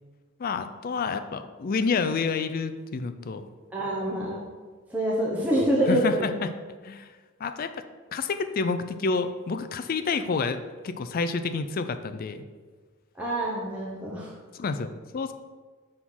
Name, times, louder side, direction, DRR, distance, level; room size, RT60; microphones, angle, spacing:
voice 1, 0.4-3.4 5.9-6.5 6.8-7.1 7.4-7.7 8.1-12.4 14.5-15.3, left 4 dB, 40° left, 10 dB, 0.4 m, -29 dB
voice 2, 3.7-4.5 4.9-6.3 13.2-14.3, right 1 dB, 5° right, -5 dB, 0.8 m, -26 dB
6.0 x 3.8 x 6.1 m, 1.4 s
head